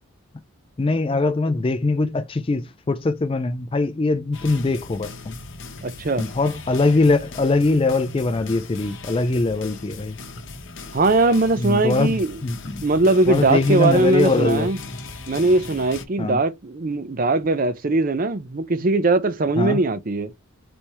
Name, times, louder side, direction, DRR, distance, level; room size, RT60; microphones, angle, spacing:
voice 1, 0.8-5.4 6.2-10.2 11.6-12.2 12.4-12.8 13.3-14.7 16.2-16.4 19.6-19.8, left 3 dB, 25° left, 0.3 m, -22 dB
sound 1, 4.3-16.1, left 3 dB, 55° left, 0.8 m, -38 dB
voice 2, 5.8-6.3 10.9-12.4 12.8-14.8 15.3-20.3, right 2 dB, 40° right, 0.5 m, -20 dB
4.2 x 3.4 x 3.0 m
head